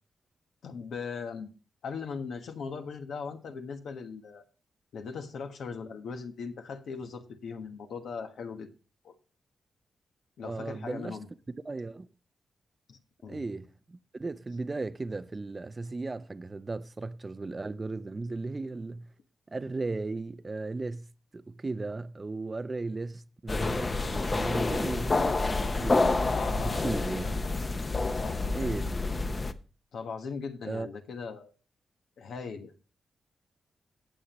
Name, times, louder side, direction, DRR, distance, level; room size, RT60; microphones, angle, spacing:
voice 1, 0.6-1.5 1.8-4.4 4.9-8.7 9.0-9.1 10.4-11.3 12.9-13.5 26.3-27.0 28.1-28.7 29.9-31.5 32.2-32.7, left 5 dB, 85° left, 1.3 m, -39 dB
voice 2, 10.4-11.2 11.6-12.1 13.3-19.1 19.5-21.1 21.3-26.2 26.5-27.3 28.5-28.9 30.6-30.9, right 3 dB, 30° right, 0.6 m, -36 dB
sound 1, 23.5-29.5, left 3 dB, 35° left, 0.8 m, -28 dB
18.0 x 7.2 x 3.0 m
cardioid pair, 90°, 0 cm